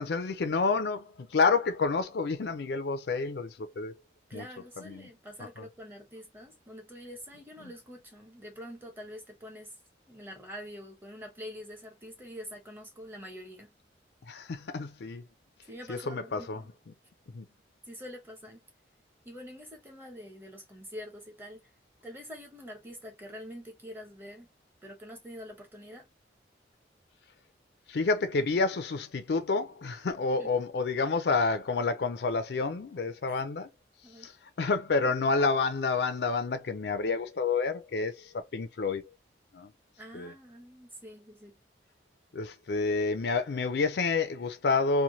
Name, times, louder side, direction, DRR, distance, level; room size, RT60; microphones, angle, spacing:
voice 1, 0.0-4.0 4.3-4.5 4.8-5.1 5.4-5.7 7.6-7.7 14.3-15.2 15.9-16.6 17.3-17.5 27.9-33.7 34.2-34.3 34.6-39.0 39.5-39.7 40.1-40.3 42.3-45.0, left 4 dB, 65° left, 0.4 m, -29 dB
voice 2, 4.3-9.7 10.1-13.7 15.7-16.7 17.8-18.6 19.2-21.6 22.0-24.5 24.8-26.0 30.4-30.5 33.3-33.4 34.0-34.3 40.0-41.6, equal, 10° right, 0.8 m, -45 dB
3.1 x 2.2 x 2.6 m
head